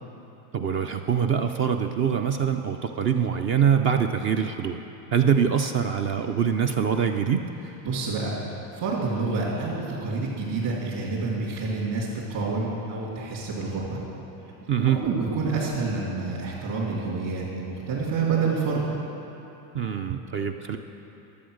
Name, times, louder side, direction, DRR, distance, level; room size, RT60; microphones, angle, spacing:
voice 1, 0.5-4.8 5.1-7.4 14.7-15.0 19.7-20.8, right 7 dB, 30° right, 6 dB, 0.3 m, -24 dB
voice 2, 7.8-8.4 8.7-14.0 14.9-18.8, right 4 dB, 50° right, -9 dB, 3.1 m, -28 dB
12.0 x 7.9 x 6.4 m, 2.9 s
supercardioid pair, 105°, 49 cm